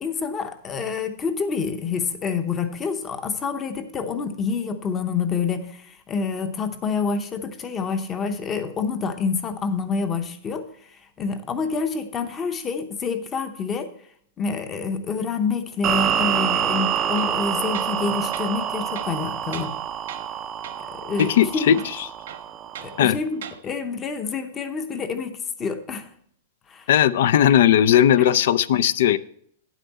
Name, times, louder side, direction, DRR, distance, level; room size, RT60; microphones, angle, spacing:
voice 1, 0.0-13.9 14.4-19.7 20.9-21.8 22.8-26.1 26.7-26.9, left 5 dB, 15° left, 9 dB, 0.8 m, -27 dB
sound 1, 15.8-23.0, right 10 dB, 20° right, 0.5 m, -27 dB
Tools, 17.2-17.4 17.7-18.0 18.3-18.5 18.9-19.8 20.1-20.4 20.6-20.9 21.2-21.3 21.7-23.0 23.3-23.6, right 9 dB, 75° right, 1.1 m, -39 dB
voice 2, 21.2-21.8 23.0-23.2 26.9-29.2, left 10 dB, 60° left, 17 dB, 0.4 m, -17 dB
9.3 x 8.2 x 4.1 m, 0.65 s
supercardioid pair, 165°, 0 cm